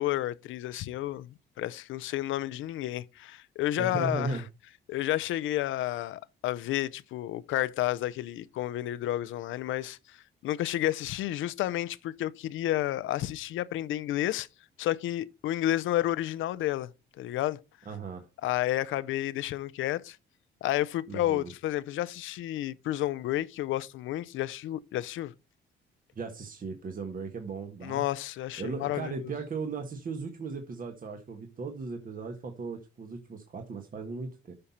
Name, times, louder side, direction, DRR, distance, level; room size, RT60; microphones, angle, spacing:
voice 1, 0.0-4.4 4.9-10.0 10.4-14.5 14.8-16.9 17.2-17.6 18.4-20.2 20.6-25.3 27.8-29.3, left 14 dB, 80° left, 0.6 m, -31 dB
voice 2, 3.7-4.4 17.8-18.2 21.1-21.5 26.1-28.1 28.6-34.5, right 4 dB, 45° right, 1.5 m, -37 dB
8.6 x 5.8 x 4.2 m
cardioid pair, 90°, 20 cm